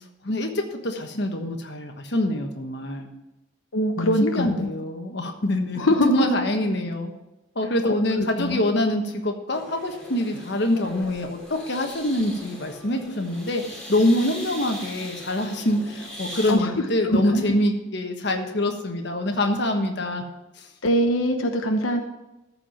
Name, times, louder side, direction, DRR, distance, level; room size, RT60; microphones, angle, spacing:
voice 1, 0.2-3.1 4.0-7.1 7.5-20.2 20.6-20.7, left 1 dB, 55° left, 4 dB, 1.3 m, -25 dB
voice 2, 3.7-4.7 5.8-6.3 7.8-8.6 16.5-16.7 17.0-17.5 20.8-22.0, equal, 90° left, 4 dB, 1.0 m, -23 dB
sound 1, 9.5-16.5, equal, 5° left, 2.6 m, -40 dB
14.0 x 4.9 x 7.1 m, 0.97 s
head